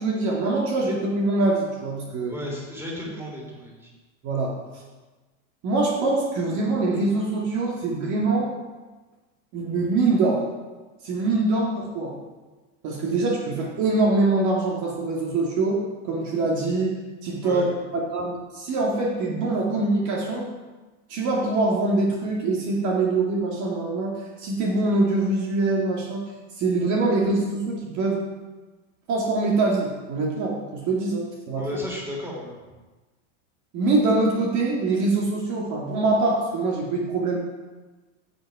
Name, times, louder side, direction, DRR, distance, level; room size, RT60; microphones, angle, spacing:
voice 1, 0.0-2.3 4.2-4.8 5.6-8.5 9.5-10.5 11.0-12.1 12.8-17.0 17.2-17.7 18.1-20.4 21.1-26.2 26.6-28.2 29.1-31.7 33.7-37.4, right 2 dB, 45° right, -2 dB, 2.2 m, -24 dB
voice 2, 2.3-3.9 17.4-17.7 31.6-32.6, left 1 dB, 5° right, -2 dB, 3.1 m, -34 dB
15.5 x 6.4 x 4.9 m, 1.2 s
supercardioid pair, 135°, 41 cm